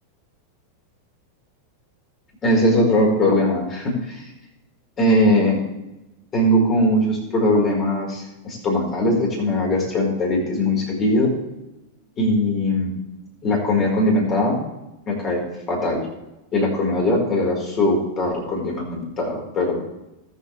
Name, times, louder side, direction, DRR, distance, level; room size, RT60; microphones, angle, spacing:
voice 1, 2.4-4.2 5.0-5.6 6.3-11.3 12.2-12.9 13.4-14.6 15.1-16.1 16.5-19.8, left 1 dB, 30° left, -1 dB, 4.7 m, -20 dB
20.0 x 7.4 x 3.4 m, 0.96 s
figure-of-eight pair, 90°, 0 cm